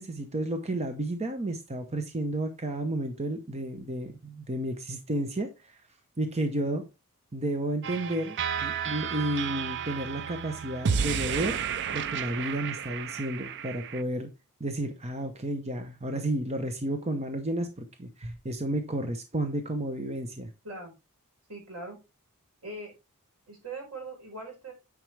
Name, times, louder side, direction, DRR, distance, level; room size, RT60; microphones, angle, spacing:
voice 1, 0.0-5.8 6.2-6.8 7.3-11.6 11.9-14.3 14.6-20.5, right 1 dB, 30° right, 6 dB, 0.9 m, -32 dB
sound 1, 7.8-14.0, right 7 dB, 55° right, 0.5 m, -32 dB
voice 2, 21.5-22.0 22.6-22.9 23.5-24.7, right 2 dB, 85° right, 1 dB, 4.4 m, -40 dB
9.2 x 5.2 x 3.3 m, 0.27 s
head